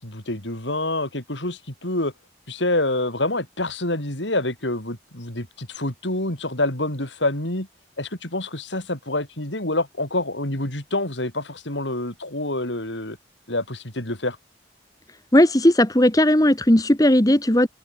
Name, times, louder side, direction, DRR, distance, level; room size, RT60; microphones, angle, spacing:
voice 1, 0.0-2.1 2.5-7.7 8.0-13.2 13.5-14.4, left 2 dB, 85° left, 7.6 m, -27 dB
voice 2, 15.3-17.7, left 1 dB, 20° left, 1.5 m, -16 dB
open air
head